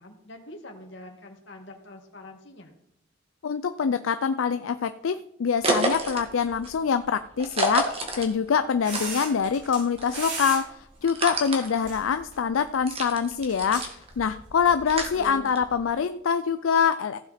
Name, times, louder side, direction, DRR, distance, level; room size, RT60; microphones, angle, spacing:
voice 1, 0.0-2.7 14.6-15.5, left 1 dB, 60° left, 3 dB, 1.9 m, -44 dB
voice 2, 3.4-17.2, left 6 dB, 80° left, 10 dB, 0.4 m, -25 dB
sound 1, 5.6-9.6 9.9-15.9, right 2 dB, 30° right, 1.7 m, -31 dB
sound 2, 8.8-9.8 10.1-10.6 11.8-12.3 13.5-13.9 14.6-14.7, right 3 dB, 60° right, 3.9 m, -34 dB
15.5 x 7.4 x 4.2 m, 0.82 s
head